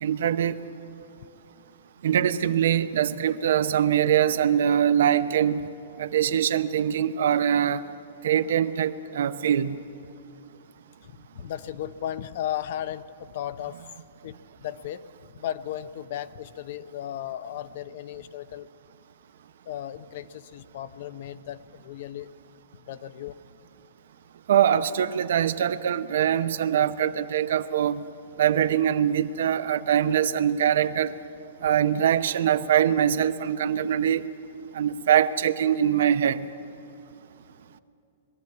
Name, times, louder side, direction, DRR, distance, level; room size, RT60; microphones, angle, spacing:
voice 1, 0.0-0.6 2.0-5.7 6.0-7.8 8.2-9.8 24.5-28.0 28.4-31.1 31.6-34.3 34.7-36.4, right 9 dB, 75° right, 12 dB, 0.8 m, -23 dB
voice 2, 11.0-13.8 14.2-18.7 19.7-22.3 22.9-23.4, left 11 dB, 60° left, 14 dB, 0.7 m, -35 dB
21.0 x 13.0 x 9.6 m, 2.6 s
hypercardioid pair, 145°, 0 cm